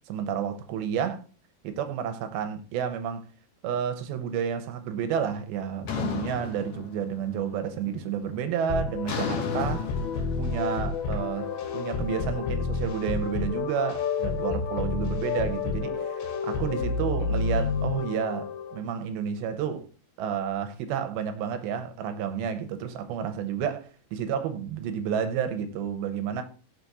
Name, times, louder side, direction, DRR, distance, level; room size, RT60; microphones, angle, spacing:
voice 1, 0.1-1.2 1.6-3.2 3.6-9.9 10.4-19.9 20.2-26.4, right 8 dB, 90° right, 2.6 m, -31 dB
sound 1, 5.9-7.4 7.7-8.2 9.1-12.1, left 6 dB, 65° left, 2.0 m, -34 dB
sound 2, 8.7-18.8, left 5 dB, 85° left, 3.1 m, -30 dB
5.9 x 4.6 x 4.0 m
omnidirectional pair, 4.3 m